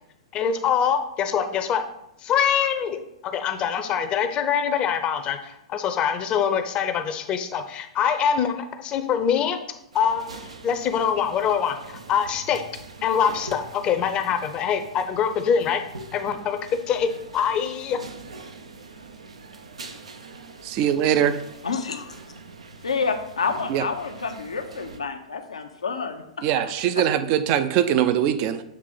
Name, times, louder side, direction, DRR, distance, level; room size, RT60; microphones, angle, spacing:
voice 1, 0.3-1.8 2.2-9.6 9.9-12.6 13.0-15.8 16.1-16.6 16.9-18.0, left 7 dB, 30° left, 8 dB, 0.7 m, -24 dB
sound 1, 9.9-25.0, right 3 dB, 75° right, 0.8 m, -43 dB
voice 2, 20.6-21.4 23.7-23.8 26.4-28.6, right 10 dB, 40° right, 11 dB, 0.6 m, -22 dB
voice 3, 21.6-22.2 22.8-26.2 26.6-26.7, left 5 dB, 75° left, 6 dB, 0.8 m, -28 dB
7.5 x 3.3 x 5.0 m, 0.80 s
figure-of-eight pair, 105°, 3 cm